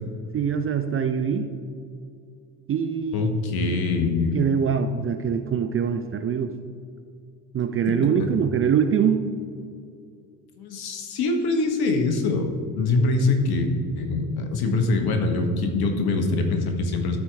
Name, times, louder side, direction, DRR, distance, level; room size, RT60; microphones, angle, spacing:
voice 1, 0.3-1.5 2.7-3.4 3.7-3.8 4.3-6.5 7.5-9.3, right 7 dB, 30° right, 9 dB, 0.5 m, -23 dB
voice 2, 3.1-4.4 10.6-12.5 12.8-13.7 14.0-17.2, left 3 dB, 50° left, 5 dB, 1.6 m, -23 dB
13.5 x 4.5 x 4.8 m, 2.3 s
hypercardioid pair, 65°, 47 cm